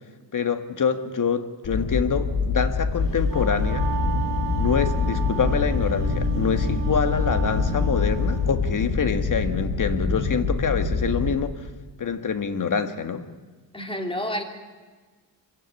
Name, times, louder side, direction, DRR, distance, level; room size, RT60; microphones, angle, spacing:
voice 1, 0.3-3.8 4.6-11.7 12.0-13.2, left 6 dB, 45° left, 9 dB, 1.7 m, -26 dB
sound 1, 1.6-11.4, left 4 dB, 70° left, 4.5 m, -25 dB
Wind instrument woodwind instrument, 3.1-8.5, right 6 dB, 70° right, 3.2 m, -35 dB
voice 2, 13.7-14.4, equal, 10° left, 4 dB, 3.1 m, -29 dB
25.0 x 16.5 x 9.6 m, 1.4 s
cardioid pair, 105°, 45 cm